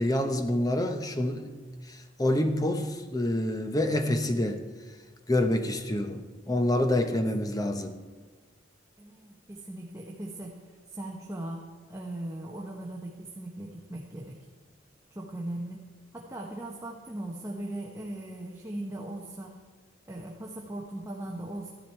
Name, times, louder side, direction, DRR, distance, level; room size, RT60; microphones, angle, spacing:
voice 1, 0.0-1.5 1.9-4.6 5.3-8.0, left 1 dB, 20° left, 7 dB, 0.8 m, -27 dB
voice 2, 9.0-10.6 10.9-14.4 15.1-15.8 16.1-19.5 20.1-21.7, right 1 dB, 15° right, -2 dB, 1.0 m, -39 dB
14.0 x 11.0 x 4.5 m, 1.4 s
head